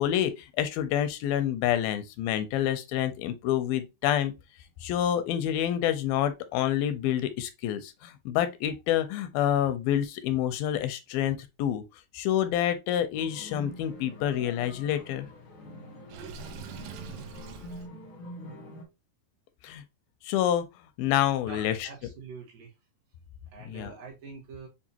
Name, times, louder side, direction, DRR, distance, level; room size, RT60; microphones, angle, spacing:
voice 1, 0.0-4.3 4.8-11.8 12.1-15.3 19.6-19.8 20.2-20.7 21.0-21.9 23.7-24.0, left 11 dB, 85° left, 2.4 m, -28 dB
sound 1, 13.1-18.8, left 1 dB, 65° left, 1.2 m, -45 dB
Water / Sink (filling or washing), 16.1-17.9, right 5 dB, 85° right, 2.4 m, -42 dB
voice 2, 21.5-22.7 23.5-24.7, right 5 dB, 70° right, 2.9 m, -45 dB
6.9 x 2.5 x 2.8 m
omnidirectional pair, 4.1 m